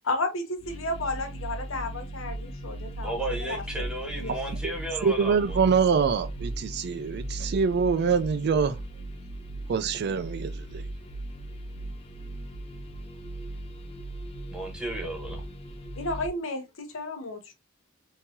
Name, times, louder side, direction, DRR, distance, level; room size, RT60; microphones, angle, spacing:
voice 1, 0.0-3.2 3.5-3.6 4.2-4.4 16.0-17.5, left 2 dB, 85° left, 0.9 m, -32 dB
sound 1, 0.6-16.3, right 1 dB, 30° left, 0.5 m, -38 dB
voice 2, 3.0-5.6 14.5-15.4, right 1 dB, 5° right, 1.0 m, -34 dB
voice 3, 5.0-8.8 9.7-10.8, right 5 dB, 55° right, 0.4 m, -25 dB
3.7 x 2.7 x 2.7 m
head